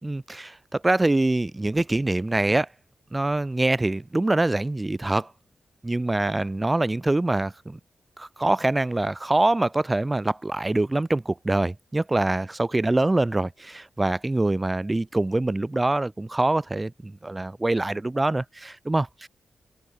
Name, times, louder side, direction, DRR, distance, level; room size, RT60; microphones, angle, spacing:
voice 1, 0.0-2.7 3.1-5.3 5.8-7.8 8.2-19.3, right 2 dB, 20° right, 5.7 m, -24 dB
cardioid pair, 70°, 0 cm